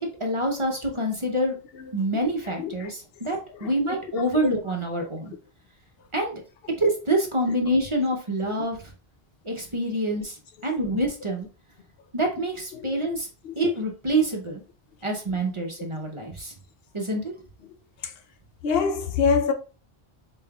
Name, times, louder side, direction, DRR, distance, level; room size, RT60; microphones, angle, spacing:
voice 1, 0.0-1.6 1.9-5.3 6.1-6.4 6.8-8.9 9.4-11.5 12.1-13.3 13.6-14.6 15.0-16.5 16.9-17.3, right 1 dB, 35° right, 0.7 m, -26 dB
voice 2, 2.6-2.9 3.5-3.7 4.2-4.3 8.0-8.1 12.7-13.0 13.4-13.6 17.7-17.8 18.0-18.1 18.6-19.5, left 5 dB, 70° left, 0.8 m, -26 dB
4.1 x 3.6 x 2.3 m
omnidirectional pair, 1.0 m